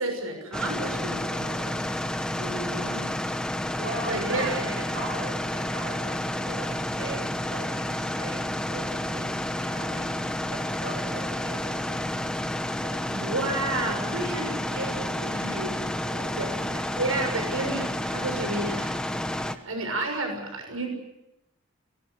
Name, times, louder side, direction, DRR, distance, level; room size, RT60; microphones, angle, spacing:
voice 1, 0.0-1.8 2.4-3.1 4.1-4.5 13.1-19.0 19.3-20.9, right 2 dB, 90° right, 4 dB, 6.7 m, -32 dB
sound 1, 0.5-19.6, left 1 dB, 5° left, 1.1 m, -30 dB
voice 2, 3.8-9.3 9.6-10.1 10.5-12.4 12.8-13.0 13.4-14.0 16.0-16.7, right 2 dB, 60° right, 2 dB, 6.6 m, -39 dB
24.5 x 19.0 x 8.3 m, 0.91 s
head